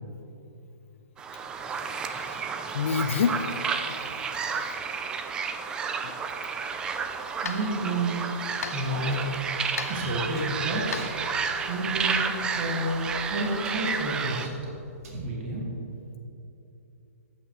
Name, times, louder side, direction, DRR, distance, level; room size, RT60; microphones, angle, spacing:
sound 1, 1.2-14.5, right 5 dB, 10° right, 0.3 m, -31 dB
voice 1, 2.1-2.5 2.7-3.4 6.0-6.1, left 7 dB, 55° left, 6 dB, 0.6 m, -27 dB
sound 2, 6.7-12.0, left 5 dB, 80° left, 0.9 m, -41 dB
voice 2, 7.4-8.4 8.7-9.2 9.9-11.1 11.7-13.0 13.3-14.6 15.1-15.7, right 1 dB, 40° right, -2 dB, 1.9 m, -30 dB
Writing, 8.6-15.1, right 1 dB, 70° right, 2.5 m, -47 dB
13.5 x 8.8 x 3.1 m, 2.9 s
hypercardioid pair, 155°, 8 cm